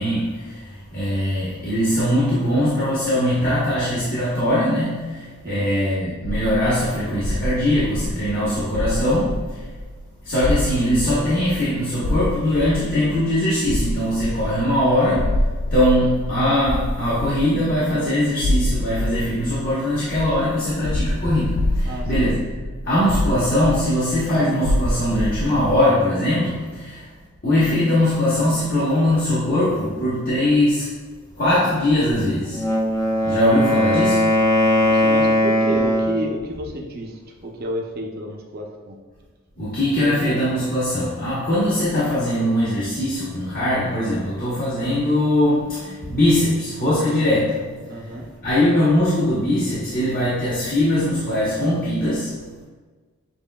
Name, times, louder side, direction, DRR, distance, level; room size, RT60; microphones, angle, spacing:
voice 1, 0.0-9.6 10.2-15.4 15.7-22.5 22.8-27.1 27.4-30.9 31.4-32.6 33.2-34.2 39.6-52.3, left 1 dB, 40° left, -10 dB, 1.0 m, -21 dB
sound 1, 6.2-25.8, left 1 dB, 80° left, 0.4 m, -27 dB
voice 2, 21.8-22.3 34.8-39.0 47.9-48.3, right 1 dB, 45° right, 0 dB, 0.6 m, -30 dB
Wind instrument woodwind instrument, 32.5-36.3, left 1 dB, 15° left, 0.4 m, -19 dB
7.0 x 3.1 x 2.2 m, 1.4 s
head